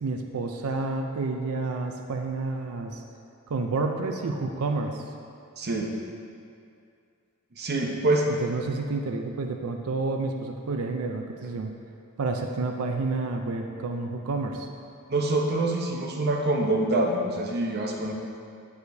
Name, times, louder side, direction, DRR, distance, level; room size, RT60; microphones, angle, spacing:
voice 1, 0.0-3.0 3.5-5.0 8.4-11.7 12.2-14.7, right 3 dB, 70° right, 4 dB, 0.5 m, -29 dB
voice 2, 5.6-5.9 7.6-8.3 15.1-18.1, right 2 dB, 45° right, 0 dB, 0.8 m, -25 dB
13.0 x 4.9 x 2.7 m, 2.4 s
head